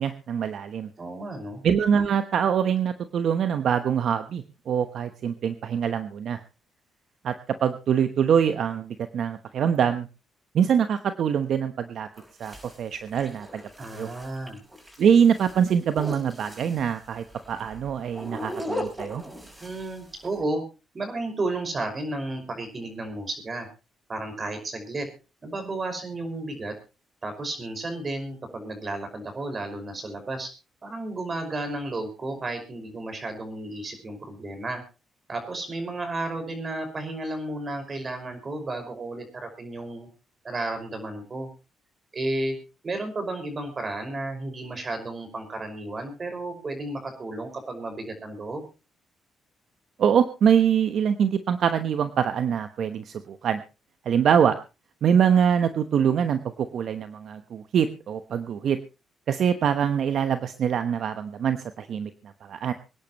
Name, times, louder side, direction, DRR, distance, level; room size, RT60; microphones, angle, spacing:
voice 1, 0.0-0.9 1.6-6.4 7.2-7.4 7.6-10.1 10.5-12.1 12.4-13.6 14.0-14.1 15.0-19.2 50.0-53.6 54.0-54.6 55.0-58.8 59.3-62.1 62.4-62.7, right 8 dB, 65° right, 9 dB, 1.0 m, -24 dB
voice 2, 1.0-1.6 13.8-14.6 19.6-20.6 20.9-23.7 24.1-25.1 25.4-26.7 27.2-30.5 30.8-34.8 35.3-40.1 40.4-41.5 42.1-42.6 42.8-48.7, right 2 dB, 35° right, 7 dB, 5.4 m, -33 dB
sound 1, 12.1-20.4, left 1 dB, 15° right, 6.6 m, -38 dB
25.0 x 10.5 x 3.1 m, 0.30 s
cardioid pair, 90°, 0 cm